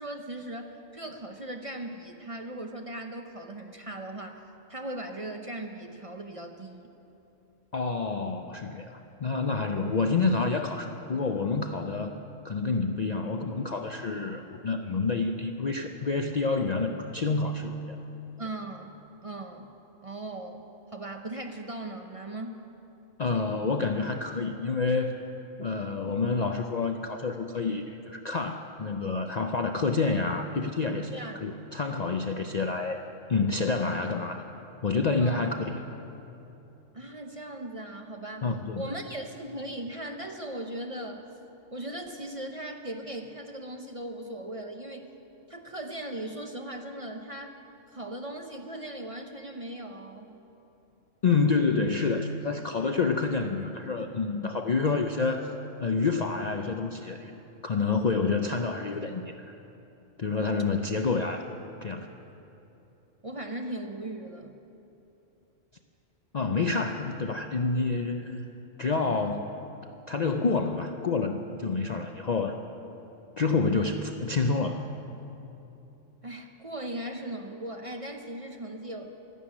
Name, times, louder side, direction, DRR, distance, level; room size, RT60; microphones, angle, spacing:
voice 1, 0.0-6.9 18.4-18.9 19.2-19.7 20.0-22.6 31.1-31.8 35.2-35.4 36.9-41.3 41.7-45.1 45.5-47.6 47.9-50.4 63.2-64.6 76.2-79.1, right 1 dB, 35° right, 4 dB, 0.7 m, -38 dB
voice 2, 7.7-12.1 12.4-18.0 23.2-25.2 25.6-33.0 33.3-34.4 34.8-35.8 38.4-38.9 51.2-55.5 55.8-57.3 57.6-59.5 60.2-61.5 61.8-62.1 66.3-68.4 68.8-69.5 70.1-72.6 73.4-74.8, left 4 dB, 50° left, 5 dB, 0.5 m, -28 dB
13.0 x 12.0 x 8.8 m, 2.9 s
omnidirectional pair, 1.3 m